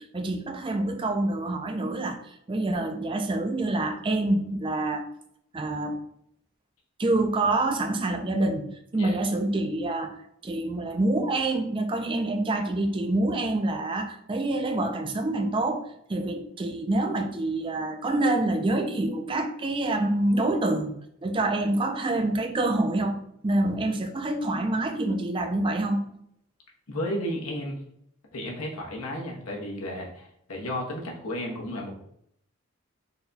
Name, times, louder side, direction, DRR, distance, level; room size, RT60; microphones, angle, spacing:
voice 1, 0.0-5.1 5.5-6.0 7.0-10.2 10.4-20.9 21.2-23.2 23.4-26.0, right 2 dB, 25° right, 6 dB, 0.4 m, -26 dB
voice 2, 26.9-27.8 28.3-32.0, equal, 90° left, -1 dB, 1.0 m, -33 dB
4.0 x 2.3 x 3.9 m, 0.73 s
head